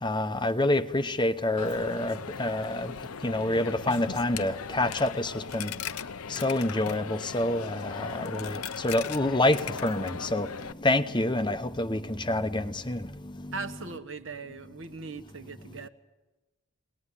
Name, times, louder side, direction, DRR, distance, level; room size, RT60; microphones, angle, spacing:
voice 1, 0.0-5.7 6.3-13.6, left 1 dB, 20° left, 0.8 m, -28 dB
Coin (dropping), 1.6-10.7, left 6 dB, 80° left, 0.7 m, -38 dB
voice 2, 13.5-15.9, right 4 dB, 60° right, 1.3 m, -39 dB
22.5 x 19.0 x 9.9 m
head